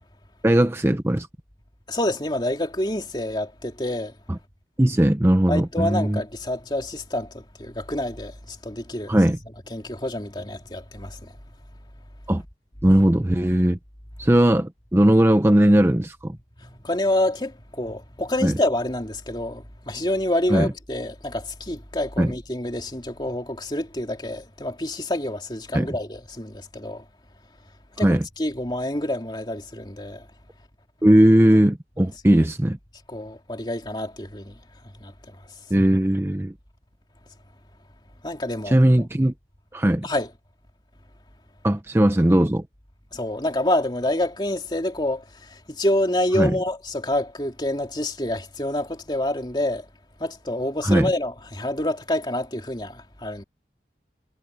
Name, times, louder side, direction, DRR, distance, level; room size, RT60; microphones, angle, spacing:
voice 1, 0.4-1.3 4.3-4.4 4.8-6.2 9.1-9.4 12.3-12.4 12.8-13.8 14.2-16.4 18.4-18.5 20.5-20.7 22.2-22.3 25.7-25.9 28.0-28.3 31.0-32.8 35.7-36.5 38.7-39.3 39.7-40.1 41.6-42.6 46.4-46.6 50.8-51.1, right 1 dB, 15° right, 0.6 m, -18 dB
voice 2, 1.9-4.1 5.5-9.2 9.7-11.3 16.6-27.0 28.0-30.2 32.0-32.1 33.1-34.5 35.0-35.4 38.2-38.8 40.0-40.3 43.1-49.8 50.2-53.4, left 1 dB, 25° left, 2.9 m, -27 dB
head